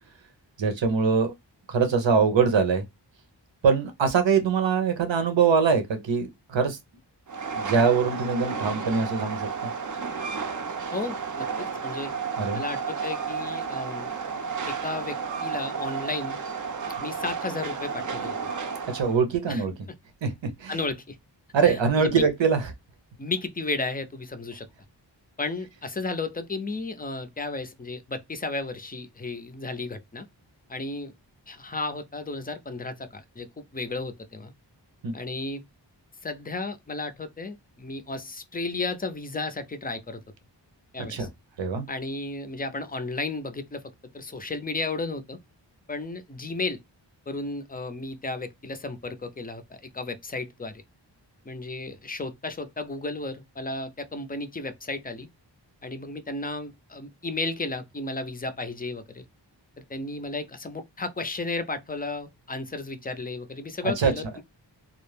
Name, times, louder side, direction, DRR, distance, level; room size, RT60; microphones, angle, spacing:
voice 1, 0.6-1.3 1.7-2.8 3.6-6.8 7.5-9.5 12.4-12.6 18.9-19.7 20.2-20.3 20.6-20.7 21.5-22.6 35.0-35.1 41.1-41.3 41.6-41.8 64.0-64.1, right 5 dB, 80° right, 0.8 m, -23 dB
Train, 7.3-19.2, right 5 dB, 45° right, 0.5 m, -32 dB
voice 2, 10.9-11.5 11.8-12.1 12.5-14.1 14.7-16.4 17.0-18.5 19.5-19.6 20.7-21.2 21.6-22.2 23.2-24.7 25.4-30.3 30.7-31.1 31.5-34.5 35.1-35.6 36.2-40.2 40.9-41.3 41.9-43.8 44.1-45.4 45.9-46.8 47.3-50.8 51.5-55.3 55.8-59.3 59.8-64.4, left 3 dB, 20° left, 0.4 m, -33 dB
2.3 x 2.1 x 3.2 m
wide cardioid pair, 70°, 44 cm